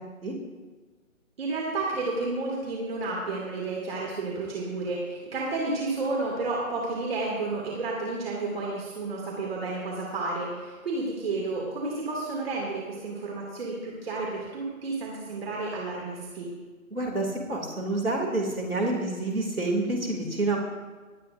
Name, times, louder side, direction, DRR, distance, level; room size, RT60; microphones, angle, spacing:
voice 1, 1.4-16.5, right 3 dB, 45° right, -3 dB, 2.6 m, -31 dB
voice 2, 16.9-20.6, right 2 dB, 80° right, 0 dB, 2.8 m, -28 dB
25.5 x 9.3 x 2.6 m, 1.4 s
figure-of-eight pair, 140°, 42 cm